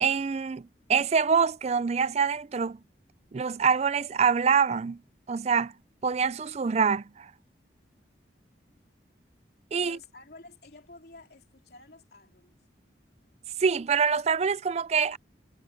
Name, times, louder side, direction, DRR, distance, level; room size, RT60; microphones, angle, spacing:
voice 1, 0.0-2.8 3.3-5.0 5.3-5.7 6.0-7.3 9.7-10.0 13.6-15.2, right 6 dB, 35° right, 0.4 m, -25 dB
voice 2, 9.8-12.6, left 3 dB, 60° left, 3.1 m, -51 dB
head